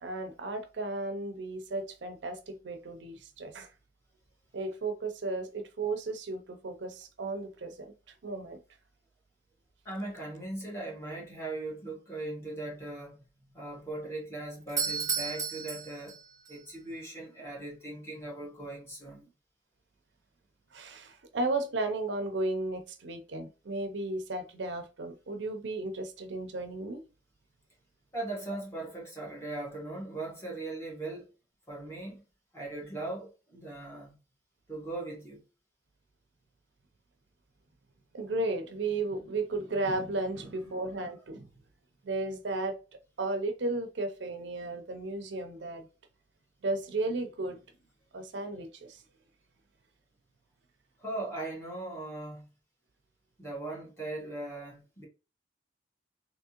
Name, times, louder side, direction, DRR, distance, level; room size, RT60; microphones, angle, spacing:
voice 1, 0.0-3.7 4.5-7.9 8.2-8.6 20.7-27.0 38.1-41.5 42.0-42.8 43.2-45.9 46.6-47.6 48.1-49.0, right 2 dB, 75° right, 0.6 m, -34 dB
voice 2, 9.8-16.2 16.5-19.3 28.1-31.3 31.7-32.2 32.5-34.1 34.7-35.4 40.4-40.5 51.0-52.5 53.4-55.0, right 2 dB, 15° left, 1.6 m, -39 dB
Doorbell, 14.6-16.6, right 6 dB, 20° right, 0.7 m, -33 dB
3.5 x 2.9 x 2.9 m
head